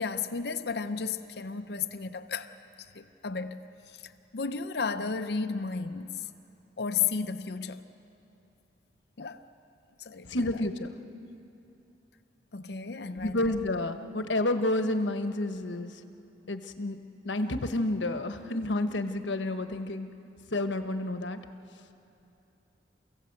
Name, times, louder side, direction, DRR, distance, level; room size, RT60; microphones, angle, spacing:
voice 1, 0.0-2.5 2.9-6.3 6.8-7.9 9.2-9.4 10.0-10.3 12.5-13.5, left 5 dB, 65° left, 0.6 m, -33 dB
voice 2, 10.2-10.9 13.1-16.0 16.5-17.0 17.2-20.1 20.5-21.4, left 1 dB, 90° left, 1.2 m, -30 dB
29.0 x 16.0 x 8.0 m
head